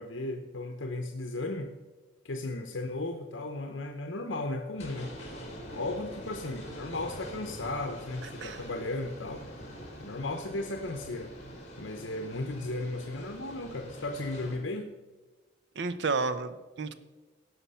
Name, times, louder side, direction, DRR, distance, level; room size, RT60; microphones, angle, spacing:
voice 1, 0.0-1.7 2.2-5.2 5.7-9.5 10.0-11.3 11.8-14.9, left 2 dB, 75° left, 4 dB, 0.9 m, -35 dB
sound 1, 4.8-14.6, equal, 35° left, 3.0 m, -45 dB
voice 2, 15.8-16.9, right 4 dB, 65° right, 13 dB, 0.7 m, -31 dB
17.0 x 5.8 x 5.6 m, 1.3 s
head